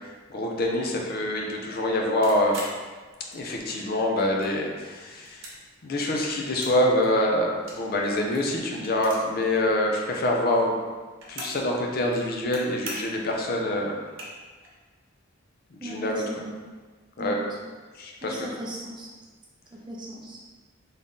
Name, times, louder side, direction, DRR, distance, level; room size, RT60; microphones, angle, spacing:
voice 1, 0.3-2.6 3.3-5.5 5.8-10.8 11.3-14.0 15.7-16.2 17.2-17.4 17.9-18.3, left 1 dB, 50° left, 0 dB, 0.5 m, -25 dB
sound 1, 2.2-3.7 4.0-4.8 5.1-6.8 7.0-9.4 9.7-9.8 10.0-11.7 12.0-12.6 12.8-13.3 13.7-13.8 14.0-14.7, right 2 dB, 80° right, 1.0 m, -41 dB
voice 2, 15.8-16.5 17.2-17.6 18.2-19.1 19.7-20.4, right 1 dB, 25° right, -3 dB, 0.6 m, -38 dB
3.6 x 2.7 x 3.6 m, 1.4 s
head